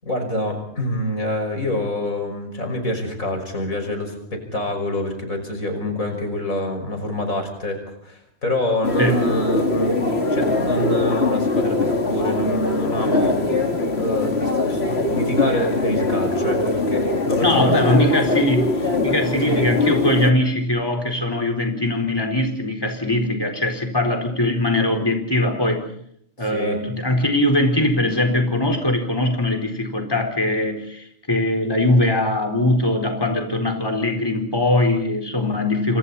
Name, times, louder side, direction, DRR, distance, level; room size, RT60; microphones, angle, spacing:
voice 1, 0.0-13.4 13.9-17.6 17.9-18.1 19.5-19.7 26.5-26.8, left 1 dB, 80° left, 4 dB, 6.2 m, -26 dB
sound 1, 8.8-20.3, left 2 dB, 50° left, 2.9 m, -22 dB
voice 2, 17.4-25.9 26.4-36.0, left 1 dB, 15° left, 4 dB, 4.4 m, -21 dB
30.0 x 27.5 x 4.2 m, 0.68 s
omnidirectional pair, 1.4 m